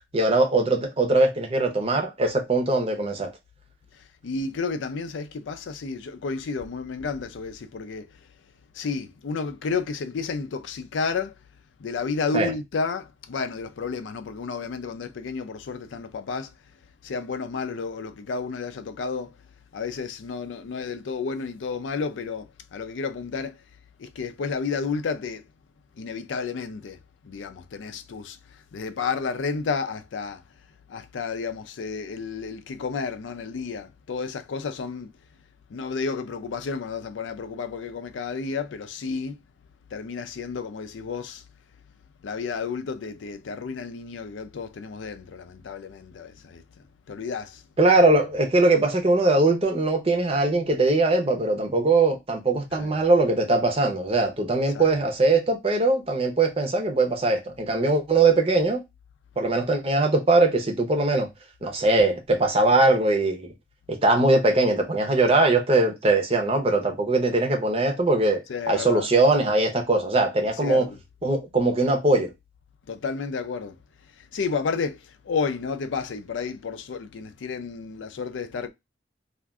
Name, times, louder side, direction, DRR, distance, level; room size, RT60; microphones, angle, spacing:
voice 1, 0.1-3.3 12.3-12.5 47.8-58.8 59.4-61.3 61.6-63.5 63.9-70.9 71.2-72.3, right 2 dB, 30° right, 0.7 m, -21 dB
voice 2, 4.2-8.1 8.7-11.3 11.8-16.5 17.0-19.4 19.7-23.6 24.0-25.4 26.0-30.4 30.9-35.1 35.7-39.4 39.9-41.4 42.2-46.6 47.1-47.6 52.7-53.0 54.7-54.9 68.5-69.1 70.6-71.0 72.9-73.8 74.2-78.7, left 5 dB, 85° left, 0.4 m, -31 dB
2.5 x 2.4 x 3.3 m
head